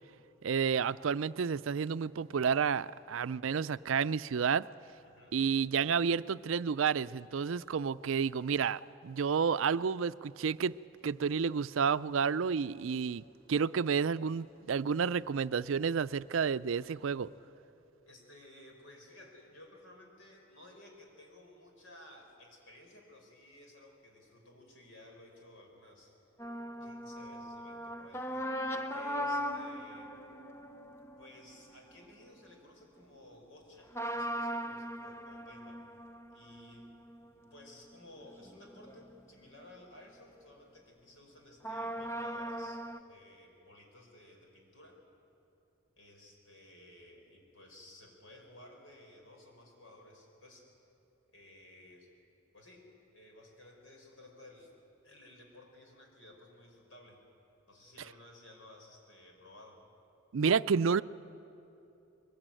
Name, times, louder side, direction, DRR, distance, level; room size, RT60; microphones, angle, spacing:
voice 1, 0.4-4.6 5.3-10.7 11.0-13.2 13.5-17.3 60.3-61.0, right 6 dB, 80° right, 15 dB, 0.5 m, -30 dB
voice 2, 5.0-5.4 18.1-26.1 26.8-28.5 28.9-30.1 31.2-35.8 36.3-36.9 37.3-45.0 46.0-50.7 51.3-52.1 52.5-52.9 53.1-54.7 55.0-57.2 57.7-59.8, left 1 dB, 75° left, 1 dB, 5.1 m, -56 dB
sound 1, 26.4-32.3 33.9-39.2 39.6-39.7 41.6-43.0, equal, 15° left, 0.8 m, -39 dB
22.5 x 21.0 x 9.1 m, 2.8 s
head